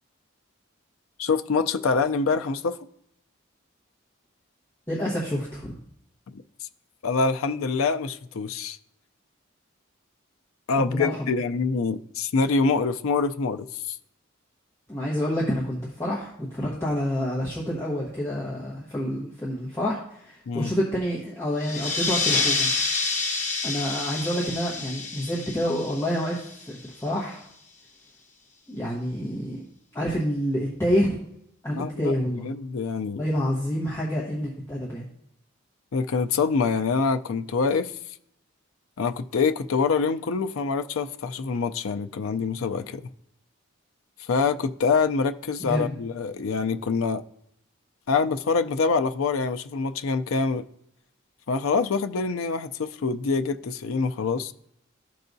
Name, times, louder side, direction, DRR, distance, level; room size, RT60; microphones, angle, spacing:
voice 1, 1.2-2.8 6.3-6.4 7.0-8.8 10.7-14.0 20.5-20.7 31.7-33.2 35.9-37.9 39.0-43.0 44.2-47.2 48.1-50.6 51.5-54.5, left 4 dB, 90° left, 0.5 m, -25 dB
voice 2, 4.9-5.8 10.8-11.2 14.9-22.7 23.6-27.5 28.7-29.6 29.9-31.3 31.6-32.5 33.2-35.1 45.6-45.9, equal, 10° left, 1.1 m, -28 dB
sound 1, 21.6-26.8, left 3 dB, 35° left, 1.1 m, -28 dB
13.5 x 4.7 x 2.7 m
head